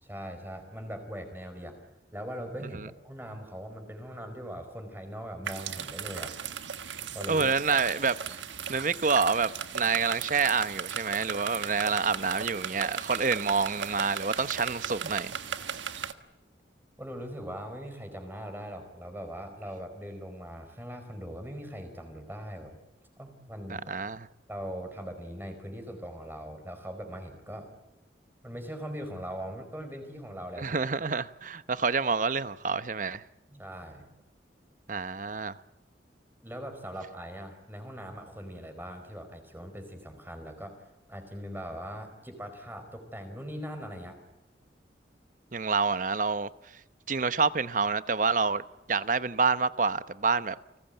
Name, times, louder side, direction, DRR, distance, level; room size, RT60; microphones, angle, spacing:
voice 1, 0.0-1.8 2.1-6.3 7.1-7.8 17.0-22.8 23.2-23.9 24.5-27.7 28.4-30.8 33.5-34.1 36.4-40.8 41.1-44.2, equal, 10° right, 4.6 m, -40 dB
sound 1, 5.4-16.1, right 7 dB, 90° right, 1.5 m, -37 dB
voice 2, 7.3-8.4 8.7-15.3 23.7-24.3 30.6-33.2 34.9-35.6 45.5-46.5 47.1-48.6 48.9-50.6, right 5 dB, 45° right, 0.9 m, -27 dB
30.0 x 20.0 x 9.1 m
head